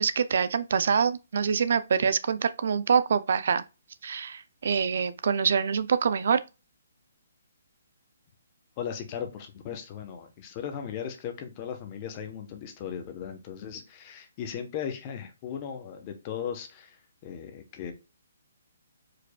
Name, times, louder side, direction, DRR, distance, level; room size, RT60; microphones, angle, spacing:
voice 1, 0.0-3.6 4.0-6.4, right 6 dB, 55° right, 0.4 m, -25 dB
voice 2, 8.8-17.9, left 8 dB, 25° left, 0.9 m, -37 dB
4.9 x 4.5 x 2.2 m
hypercardioid pair, 170°, 0 cm